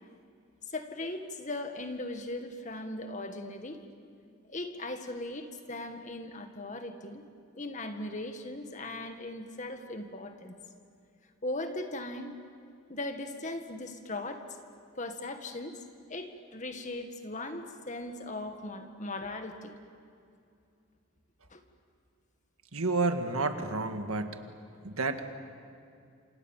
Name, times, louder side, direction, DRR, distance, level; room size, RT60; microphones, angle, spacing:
voice 1, 0.7-3.8 4.5-7.2 7.6-10.6 11.4-12.4 12.9-14.4 15.0-15.8 16.1-19.7 21.5-21.6, left 2 dB, 35° left, 6 dB, 1.9 m, -38 dB
voice 2, 22.7-24.4 24.8-25.3, right 3 dB, 80° right, 7 dB, 1.8 m, -30 dB
28.5 x 27.0 x 7.4 m, 2.4 s
head